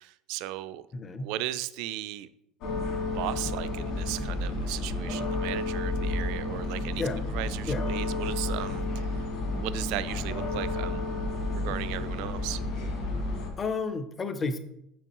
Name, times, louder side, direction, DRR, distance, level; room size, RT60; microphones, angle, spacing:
voice 1, 0.0-0.9 1.2-2.3 3.1-7.0 7.3-9.2 9.5-11.0 11.5-12.6, right 14 dB, 55° right, 14 dB, 0.3 m, -36 dB
voice 2, 0.9-1.3 7.0-7.2 7.6-7.9 13.6-14.6, left 3 dB, 20° left, 10 dB, 0.5 m, -31 dB
sound 1, 2.6-13.5, left 2 dB, 50° left, 1.8 m, -31 dB
7.0 x 5.9 x 3.0 m, 0.80 s
cardioid pair, 170°, 0 cm